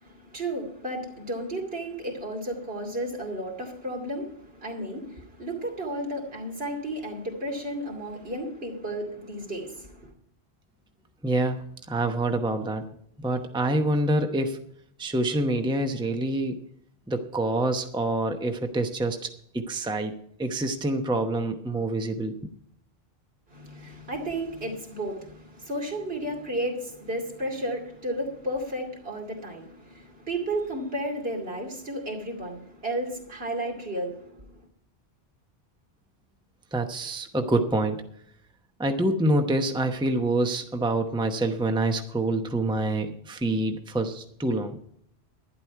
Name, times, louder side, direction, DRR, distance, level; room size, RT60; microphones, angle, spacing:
voice 1, 0.0-10.1 23.5-34.6, right 1 dB, 65° right, 2.8 m, -33 dB
voice 2, 11.2-12.9 13.2-14.7 15.0-16.6 17.1-20.1 20.4-22.4 36.7-38.0 38.8-44.8, right 1 dB, 5° right, 0.9 m, -26 dB
12.0 x 10.5 x 4.6 m
omnidirectional pair, 1.1 m